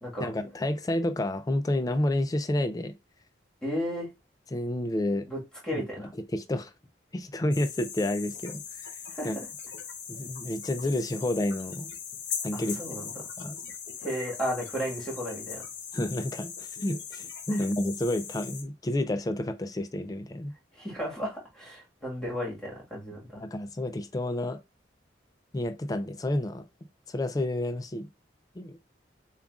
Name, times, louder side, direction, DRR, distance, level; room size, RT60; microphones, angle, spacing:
voice 1, 0.2-2.9 4.5-5.2 5.7-6.7 7.1-9.0 9.2-9.4 10.1-11.9 12.4-13.6 15.9-20.5 23.3-24.6 25.5-26.7 27.1-28.1 28.6-28.8, left 1 dB, 20° left, 0.3 m, -30 dB
voice 2, 3.6-4.1 5.3-5.4 5.6-6.0 9.1-9.3 12.5-13.0 14.0-15.6 20.8-23.2, equal, 5° left, 1.5 m, -33 dB
sound 1, 7.5-18.6, left 7 dB, 75° left, 0.8 m, -40 dB
7.0 x 2.4 x 2.4 m
head